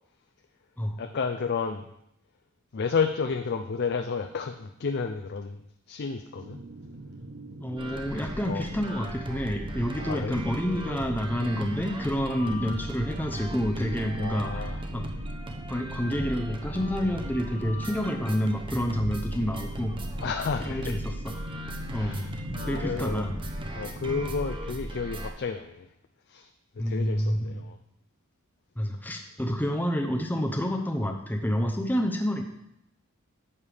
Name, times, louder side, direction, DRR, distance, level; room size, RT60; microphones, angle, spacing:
voice 1, 1.0-1.8 2.7-5.6 5.9-6.6 8.5-8.7 10.0-10.4 12.4-12.5 14.1-14.8 20.1-21.0 21.9-23.3 23.7-25.9 26.3-26.5 26.9-27.8, left 5 dB, 50° left, 6 dB, 0.5 m, -31 dB
sound 1, 6.4-24.4, equal, 60° right, 0.8 m, -43 dB
voice 2, 7.6-15.1 15.7-19.9 20.7-21.1 21.9-23.3 26.8-27.6 28.8-32.4, equal, 10° left, 3 dB, 0.7 m, -29 dB
sound 2, 7.8-25.3, right 1 dB, 25° right, 0.8 m, -37 dB
11.0 x 7.3 x 3.4 m, 0.79 s
head